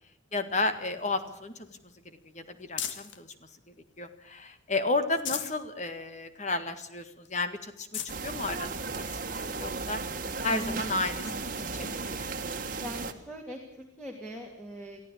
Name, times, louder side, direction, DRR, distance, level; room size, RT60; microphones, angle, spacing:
voice 1, 0.3-1.8 2.3-3.5 4.0-9.1 9.6-10.0 10.4-12.3, left 2 dB, 35° left, 9 dB, 1.8 m, -33 dB
sound 1, 0.6-3.3 3.8-4.5 4.9-5.6 6.1-6.2 6.5-6.6 7.3-7.4 7.7-8.2 9.0-9.1 10.9-11.0, left 9 dB, 70° left, 1.8 m, -40 dB
sound 2, 8.1-13.1, right 4 dB, 45° right, 1.7 m, -35 dB
voice 2, 10.5-10.8 11.2-11.7 12.8-15.0, equal, 5° left, 1 dB, 2.7 m, -41 dB
23.0 x 15.0 x 8.5 m, 0.78 s
head